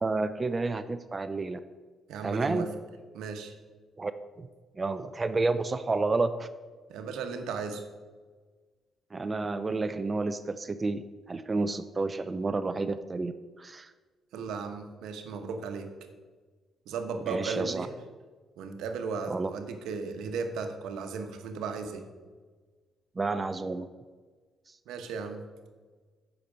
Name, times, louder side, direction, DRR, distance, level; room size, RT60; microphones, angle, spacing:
voice 1, 0.0-1.6 2.2-2.7 4.0-4.1 4.4-4.5 4.8-6.5 9.1-13.9 17.3-17.9 19.3-19.5 23.2-23.9, right 3 dB, 30° right, 11 dB, 0.4 m, -30 dB
voice 2, 2.1-2.7 3.1-3.5 6.9-7.8 14.3-15.9 16.9-17.9 18.6-22.1 24.9-25.4, right 5 dB, 85° right, 6 dB, 1.0 m, -35 dB
8.7 x 5.9 x 5.0 m, 1.4 s
cardioid pair, 90°, 0 cm